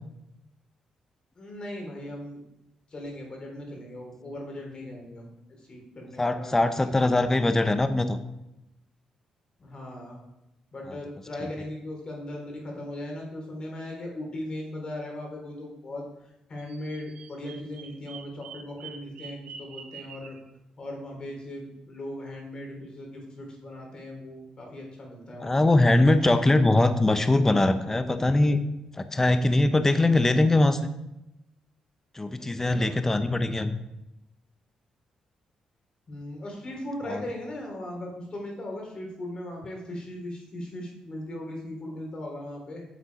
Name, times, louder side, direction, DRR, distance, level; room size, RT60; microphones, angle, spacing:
voice 1, 1.4-2.4 2.9-5.3 5.7-7.0 9.6-10.2 10.7-20.4 20.8-26.2 26.4-26.6 32.4-33.0 36.1-42.9, left 1 dB, 40° left, 0 dB, 3.9 m, -38 dB
voice 2, 6.2-8.2 25.4-28.6 28.9-30.8 32.1-33.8 37.1-37.2, left 2 dB, 20° left, 10 dB, 0.8 m, -22 dB
Bird vocalization bird call bird song, 16.6-20.4, right 7 dB, 75° right, 1.0 m, -45 dB
9.2 x 7.2 x 4.9 m, 0.92 s
cardioid pair, 75°, 2 cm